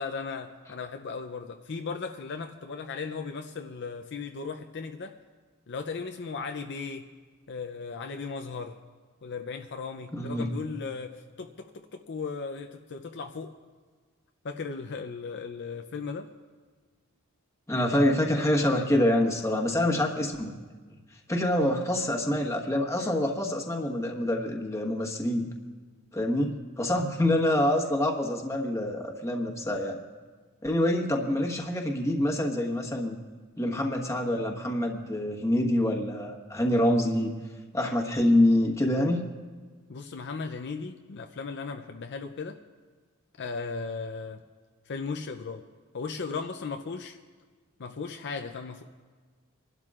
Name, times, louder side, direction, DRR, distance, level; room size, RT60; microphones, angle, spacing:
voice 1, 0.0-5.1 5.7-7.1 7.5-8.8 9.2-13.5 14.4-16.3 39.9-42.6 43.4-44.4 44.9-45.6 45.9-47.2 47.8-48.8, left 4 dB, 55° left, 6 dB, 0.5 m, -36 dB
voice 2, 10.1-10.5 17.7-20.6 21.3-25.5 26.1-30.0 30.6-33.2 33.6-37.3 37.7-39.2, left 1 dB, 15° left, 1 dB, 1.3 m, -26 dB
26.5 x 12.0 x 2.5 m, 1.5 s
head